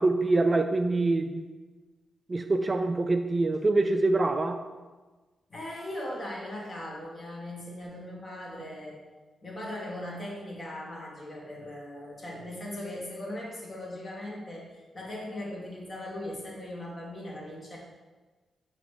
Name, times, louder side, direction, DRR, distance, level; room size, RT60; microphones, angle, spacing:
voice 1, 0.0-1.5 2.3-4.6, right 2 dB, 30° right, 8 dB, 0.3 m, -25 dB
voice 2, 5.5-9.0 9.4-17.8, left 1 dB, 40° left, -3 dB, 1.8 m, -39 dB
6.6 x 3.0 x 4.9 m, 1.3 s
cardioid pair, 85°, 0 cm